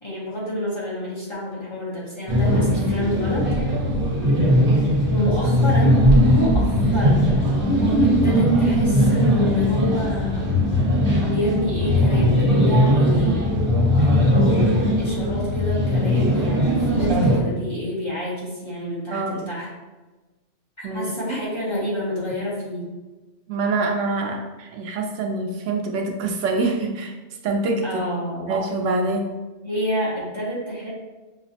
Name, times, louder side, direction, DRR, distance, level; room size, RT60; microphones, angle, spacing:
voice 1, 0.0-3.5 5.1-7.4 8.0-10.5 11.3-13.5 15.0-19.7 20.8-22.9 27.8-28.5 29.6-30.9, left 1 dB, 25° left, -7 dB, 0.8 m, -28 dB
sound 1, 2.3-17.4, equal, 60° right, 1.4 m, -19 dB
voice 2, 19.1-19.5 20.8-21.1 23.5-27.1 27.4-27.8 28.5-29.3, right 3 dB, 85° right, 3 dB, 0.9 m, -25 dB
5.6 x 2.0 x 2.7 m, 1.2 s
omnidirectional pair, 1.2 m